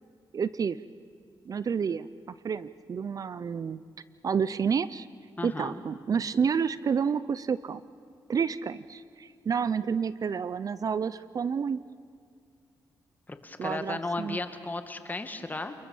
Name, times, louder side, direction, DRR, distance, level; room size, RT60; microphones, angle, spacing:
voice 1, 0.3-0.8 1.5-2.1 2.4-3.8 4.2-5.1 5.4-7.8 8.3-11.8 13.6-14.4, right 6 dB, 50° right, 16 dB, 0.6 m, -29 dB
voice 2, 5.4-5.8 13.3-15.7, left 2 dB, 20° left, 8 dB, 1.9 m, -35 dB
29.0 x 21.0 x 7.1 m, 2.3 s
cardioid pair, 85°, 8 cm